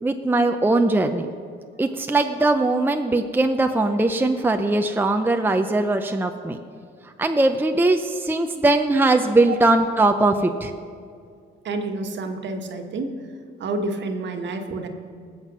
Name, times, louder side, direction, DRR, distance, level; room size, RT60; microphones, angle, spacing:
voice 1, 0.0-1.3 1.8-6.6 7.2-10.7, right 2 dB, 10° right, 5 dB, 0.6 m, -20 dB
voice 2, 11.6-13.1 13.6-14.9, right 3 dB, 65° right, 5 dB, 1.5 m, -29 dB
19.0 x 7.4 x 6.1 m, 2.2 s
cardioid pair, 90°, 20 cm